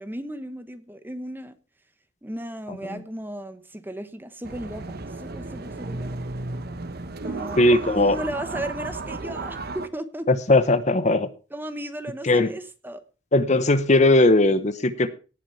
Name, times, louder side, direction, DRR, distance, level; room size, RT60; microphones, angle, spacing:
voice 1, 0.0-1.6 2.2-6.2 7.2-10.3 11.5-13.0, right 1 dB, 10° right, 1.1 m, -35 dB
voice 2, 2.7-3.0 7.6-8.2 10.3-11.3 12.2-12.5 13.3-15.1, left 2 dB, 40° left, 0.9 m, -19 dB
sound 1, 4.4-9.9, right 3 dB, 60° right, 1.0 m, -34 dB
18.0 x 6.2 x 5.6 m
head